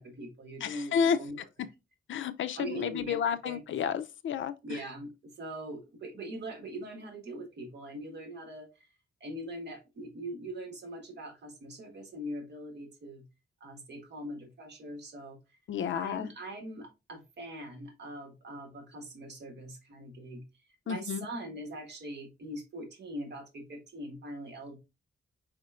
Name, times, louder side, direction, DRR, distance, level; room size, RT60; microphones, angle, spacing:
voice 1, 0.0-1.4 2.5-3.6 4.6-5.1 5.4-8.9 9.2-13.2 13.6-15.4 15.9-20.4 20.8-24.8, right 1 dB, 60° right, 1.4 m, -42 dB
voice 2, 0.6-1.2 2.1-4.5 15.7-16.3 20.9-21.3, left 7 dB, 80° left, 0.4 m, -31 dB
4.9 x 4.3 x 2.4 m
wide cardioid pair, 140°, 20 cm